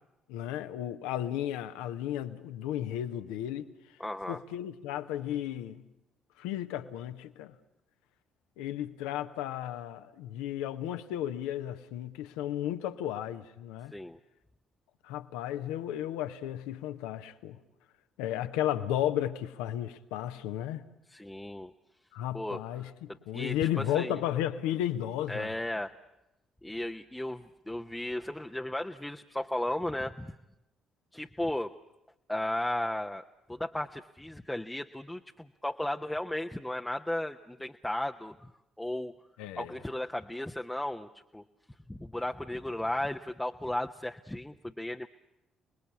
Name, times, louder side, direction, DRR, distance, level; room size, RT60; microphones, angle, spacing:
voice 1, 0.3-3.7 4.3-5.8 6.4-7.5 8.6-13.9 15.0-17.6 18.2-20.8 22.1-25.5 39.4-39.7, left 11 dB, 70° left, 1.1 m, -34 dB
voice 2, 4.0-4.4 13.9-14.2 21.1-21.7 22.3-22.6 23.3-24.1 25.3-25.9 26.6-30.4 31.1-31.7 32.3-33.2 33.5-38.5 38.8-39.1 39.6-41.4 41.9-45.1, left 1 dB, 10° left, 0.9 m, -35 dB
30.0 x 20.0 x 8.5 m
figure-of-eight pair, 45°, 0 cm